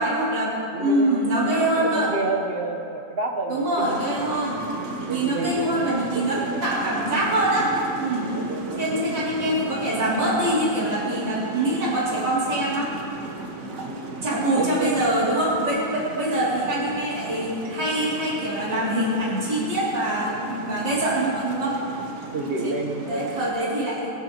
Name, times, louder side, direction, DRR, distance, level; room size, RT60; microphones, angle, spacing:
voice 1, 0.0-2.1 3.5-4.6 5.1-7.7 8.0-8.4 8.8-12.9 14.2-21.8 22.6-24.1, right 1 dB, 85° right, -8 dB, 3.6 m, -24 dB
voice 2, 0.7-4.1 5.1-6.6 8.3-9.0 13.8-14.2 14.5-15.0 22.3-23.3, right 3 dB, 40° right, 2 dB, 1.2 m, -30 dB
sound 1, 3.9-23.5, right 3 dB, 55° right, 1.5 m, -35 dB
22.0 x 12.0 x 3.0 m, 2.6 s
omnidirectional pair, 1.9 m